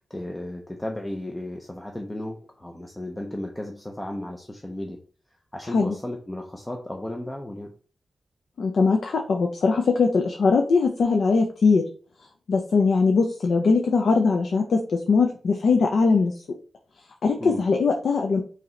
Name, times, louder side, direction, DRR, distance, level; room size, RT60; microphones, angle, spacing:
voice 1, 0.1-5.0 5.5-7.7 17.4-17.6, left 1 dB, 10° left, 2 dB, 0.4 m, -34 dB
voice 2, 8.6-11.8 12.5-16.3 17.2-18.4, left 4 dB, 70° left, 3 dB, 0.5 m, -21 dB
4.8 x 2.8 x 3.2 m, 0.42 s
wide cardioid pair, 160°, 0 cm